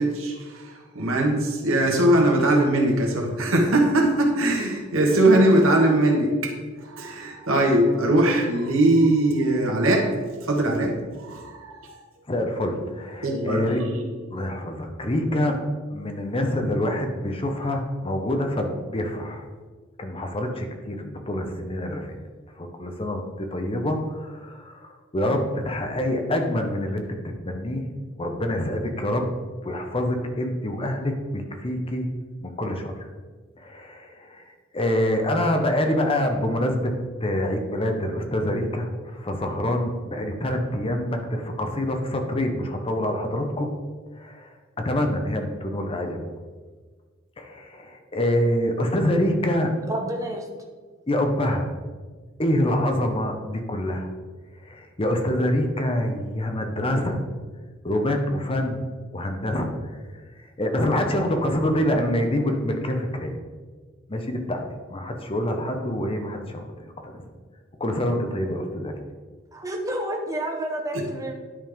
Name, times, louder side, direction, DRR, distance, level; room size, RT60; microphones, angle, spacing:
voice 1, 0.0-6.5 6.8-10.1 10.4-12.0 13.2-14.0, right 1 dB, 80° right, 1 dB, 1.5 m, -21 dB
voice 2, 12.3-13.8 14.3-15.6 15.9-19.5 20.0-22.1 22.6-27.1 27.4-27.9 28.2-29.3 29.6-32.1 32.4-33.0 33.6-34.5 34.7-36.9 37.2-43.7 44.2-44.5 44.8-46.2 47.4-49.7 51.1-51.7 52.4-54.1 54.7-57.2 57.8-58.8 59.1-59.7 60.6-63.3 64.1-64.6 64.9-67.2 67.8-68.9, left 1 dB, 25° left, 4 dB, 0.8 m, -26 dB
voice 3, 49.9-50.5 69.5-71.3, right 1 dB, 15° right, 1 dB, 0.8 m, -29 dB
10.5 x 5.4 x 3.5 m, 1.4 s
head